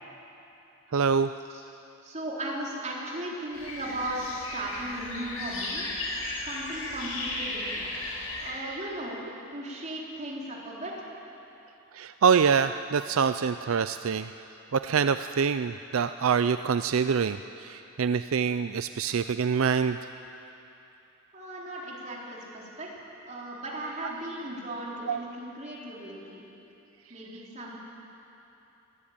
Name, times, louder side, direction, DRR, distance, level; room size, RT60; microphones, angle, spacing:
voice 1, 0.9-1.3 11.9-14.3 14.7-20.0 25.1-25.2, right 6 dB, 75° right, 11 dB, 0.4 m, -25 dB
voice 2, 2.0-5.9 6.4-7.9 8.4-9.2 9.5-11.1 21.3-26.4 27.1-27.8, right 1 dB, 35° right, -4 dB, 4.0 m, -37 dB
sound 1, 3.5-8.5, left 2 dB, 85° left, 4.9 m, -35 dB
22.0 x 15.5 x 8.9 m, 3.0 s
head